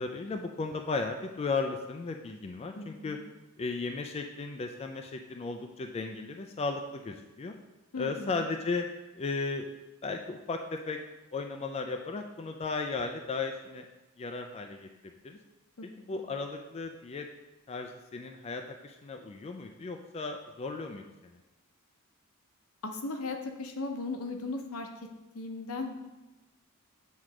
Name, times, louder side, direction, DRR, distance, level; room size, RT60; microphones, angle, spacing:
voice 1, 0.0-3.2 3.6-7.5 7.9-8.9 9.1-9.7 10.0-11.0 11.3-13.9 14.2-14.9 15.2-15.4 16.0-17.3 17.7-21.4, left 4 dB, 30° left, 4 dB, 0.3 m, -35 dB
voice 2, 2.8-3.2 7.9-8.5 15.8-16.2 22.8-25.1 25.3-26.0, left 3 dB, 75° left, 4 dB, 0.8 m, -37 dB
7.5 x 3.1 x 4.9 m, 1.1 s
head